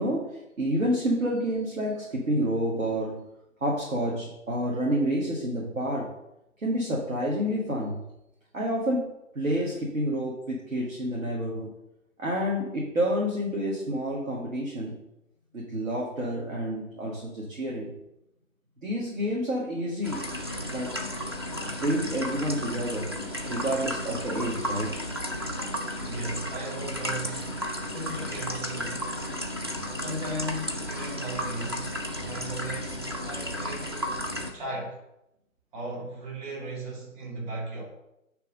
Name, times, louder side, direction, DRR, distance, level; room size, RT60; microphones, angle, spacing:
voice 1, 0.0-3.2 3.6-6.1 6.6-8.0 8.5-11.7 12.2-15.0 15.5-17.9 18.8-20.2 20.7-21.0 21.7-23.1 23.4-25.0, equal, 70° right, -2 dB, 1.8 m, -29 dB
sound 1, 20.0-34.5, equal, 20° right, 0.4 m, -33 dB
voice 2, 26.0-29.1 29.9-34.0 34.5-35.0 35.7-37.8, right 1 dB, 35° right, -3 dB, 2.9 m, -37 dB
9.0 x 3.4 x 5.2 m, 0.88 s
figure-of-eight pair, 135°, 41 cm